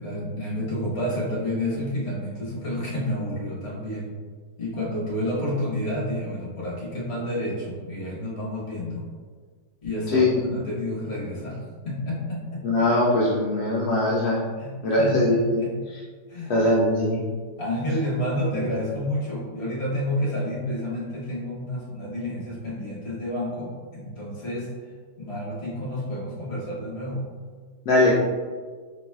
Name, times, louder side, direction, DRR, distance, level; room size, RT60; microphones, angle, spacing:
voice 1, 0.0-4.1 4.6-9.0 9.8-12.6 14.6-15.7 16.3-16.5 17.6-24.7 25.2-27.2, left 1 dB, 40° left, -6 dB, 1.3 m, -30 dB
voice 2, 10.1-10.5 12.6-14.4 14.8-16.0 16.5-17.2 18.5-18.6 27.9-28.1, left 1 dB, 70° left, -5 dB, 1.0 m, -21 dB
4.1 x 3.2 x 2.3 m, 1.5 s
omnidirectional pair, 2.0 m